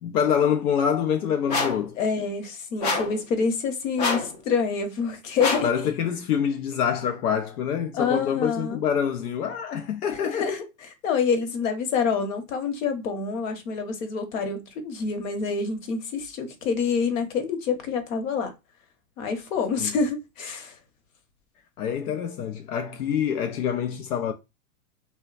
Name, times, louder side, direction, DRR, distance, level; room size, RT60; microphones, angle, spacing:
voice 1, 0.0-2.0 5.6-10.5 19.8-19.9 21.8-24.3, left 8 dB, 90° left, 0.5 m, -26 dB
sound 1, 1.5-1.9 2.8-3.2 4.0-4.4 5.4-5.8, left 3 dB, 30° left, 0.5 m, -26 dB
voice 2, 2.0-5.9 7.9-8.8 10.3-18.5 19.2-20.7, left 5 dB, 60° left, 1.0 m, -27 dB
3.2 x 2.1 x 2.4 m
hypercardioid pair, 145°, 44 cm